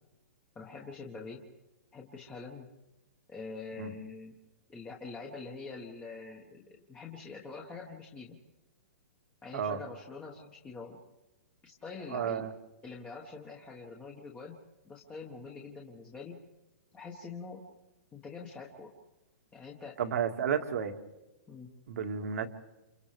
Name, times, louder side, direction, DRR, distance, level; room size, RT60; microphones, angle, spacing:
voice 1, 0.5-1.4 1.9-2.7 3.3-4.4 4.7-8.4 9.4-11.0 11.6-12.5 12.8-14.6 14.8-16.4 16.9-17.6 18.1-18.9 19.5-20.0 21.5-21.7, left 4 dB, 15° left, -1 dB, 1.5 m, -45 dB
voice 2, 12.1-12.5 20.0-20.9 21.9-22.5, right 7 dB, 70° right, 6 dB, 1.9 m, -32 dB
29.5 x 28.0 x 3.4 m, 1.0 s
hypercardioid pair, 155°, 8 cm